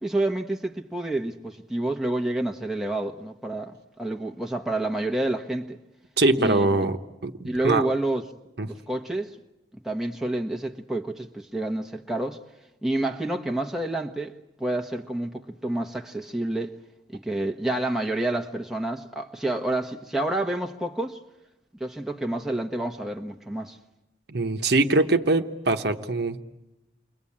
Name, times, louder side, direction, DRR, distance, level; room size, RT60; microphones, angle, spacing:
voice 1, 0.0-5.8 6.4-6.8 7.4-8.2 8.6-9.3 9.8-12.4 12.8-16.8 17.1-21.2 21.8-23.8, right 1 dB, ahead, 1.2 m, -29 dB
voice 2, 6.2-7.0 7.2-7.8 8.6-8.7 24.3-26.4, right 2 dB, 60° right, 1.2 m, -22 dB
29.5 x 23.0 x 8.7 m
head